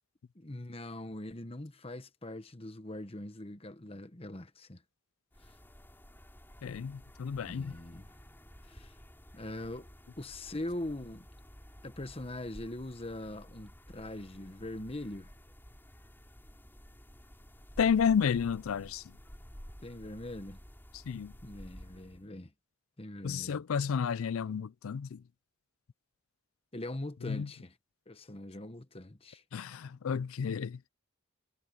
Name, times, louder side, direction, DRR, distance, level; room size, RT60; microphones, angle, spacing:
voice 1, 0.3-4.8 7.4-8.1 8.7-8.9 9.3-9.9 10.2-11.3 11.8-15.3 19.8-20.6 21.4-22.5 23.0-23.6 26.7-27.7 28.1-29.4, left 1 dB, 25° left, 1.2 m, -42 dB
sound 1, 5.3-22.3, equal, 10° left, 4.5 m, -53 dB
voice 2, 6.6-7.8 17.8-19.0 20.9-21.3 23.2-25.2 27.2-27.5 29.5-30.9, left 7 dB, 70° left, 0.4 m, -31 dB
head